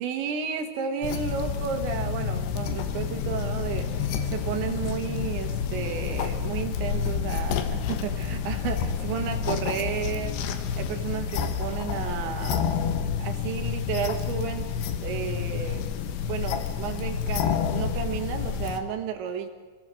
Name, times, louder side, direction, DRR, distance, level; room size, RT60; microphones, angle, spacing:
voice 1, 0.0-12.7 13.2-14.7 15.0-15.9 16.3-19.5, right 7 dB, 75° right, 6 dB, 3.9 m, -32 dB
sound 1, 1.0-18.8, left 7 dB, 70° left, 3.1 m, -29 dB
25.5 x 17.5 x 7.7 m, 1.4 s
omnidirectional pair, 5.3 m